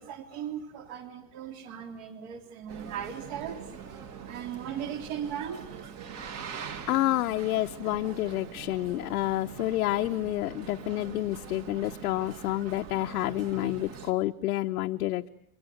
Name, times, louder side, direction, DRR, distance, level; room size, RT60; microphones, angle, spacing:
voice 1, 0.0-3.6 4.2-5.9, right 8 dB, 50° right, 5 dB, 3.7 m, -38 dB
Boat Water vehicle, 2.7-14.1, right 7 dB, 35° right, 2.2 m, -43 dB
voice 2, 6.9-15.3, left 16 dB, 90° left, 4 dB, 1.0 m, -29 dB
29.0 x 23.5 x 7.9 m, 0.71 s
supercardioid pair, 160°, 44 cm